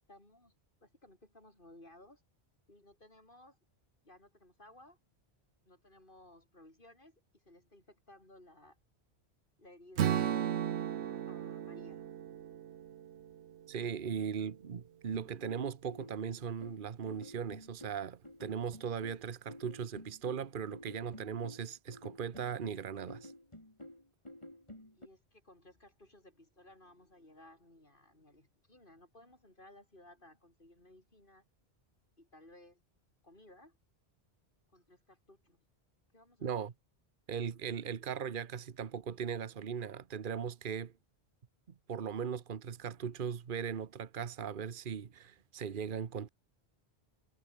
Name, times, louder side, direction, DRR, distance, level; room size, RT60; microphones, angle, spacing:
voice 1, 0.1-0.5 0.8-2.2 2.7-3.6 4.0-5.0 5.6-8.8 9.6-10.4 10.9-12.1 24.9-31.4 32.2-32.8 33.2-33.8 34.7-35.6 36.1-36.7, left 1 dB, 55° left, 6.8 m, -59 dB
Strum, 10.0-14.2, right 10 dB, 85° right, 1.0 m, -36 dB
voice 2, 13.7-23.3 36.4-36.7 37.3-40.9 41.9-46.3, right 7 dB, 55° right, 1.1 m, -38 dB
sound 1, 15.1-25.1, left 1 dB, 30° left, 4.6 m, -51 dB
omnidirectional pair, 1.1 m